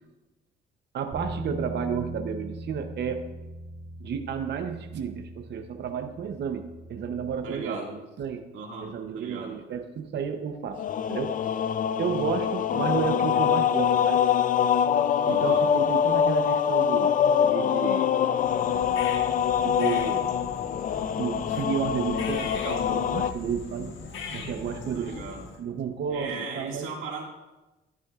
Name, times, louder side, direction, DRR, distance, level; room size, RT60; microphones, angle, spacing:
voice 1, 0.9-3.3 4.0-8.5 8.8-10.8 11.1-11.4 12.0-14.2 15.3-18.1 19.6-20.3 21.2-23.9 24.3-25.2 25.6-26.9, right 7 dB, 60° right, 6 dB, 0.8 m, -32 dB
Bass guitar, 1.1-7.4, right 1 dB, 30° right, 2.7 m, -40 dB
voice 2, 7.4-7.9 8.5-9.5 15.2-15.7 24.9-25.4 26.1-27.2, right 4 dB, 85° right, -1 dB, 2.1 m, -37 dB
sound 1, 10.8-23.3, left 8 dB, 45° left, 0.4 m, -24 dB
sound 2, 18.4-25.6, left 4 dB, 75° left, 1.3 m, -40 dB
12.0 x 9.5 x 2.4 m, 1.1 s
cardioid pair, 90°, 20 cm